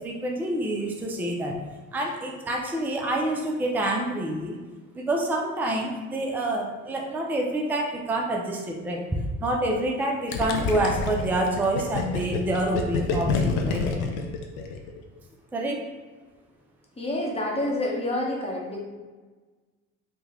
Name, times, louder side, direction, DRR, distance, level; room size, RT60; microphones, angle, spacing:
voice 1, 0.0-1.6 1.9-4.6 4.9-14.1 15.5-15.8, right 1 dB, 5° right, 0 dB, 0.5 m, -27 dB
Gurgling, 10.3-15.0, left 4 dB, 65° left, 0.6 m, -28 dB
voice 2, 17.0-18.8, left 1 dB, 15° left, -2 dB, 1.0 m, -28 dB
3.4 x 2.2 x 3.1 m, 1.3 s
hypercardioid pair, 65°, 38 cm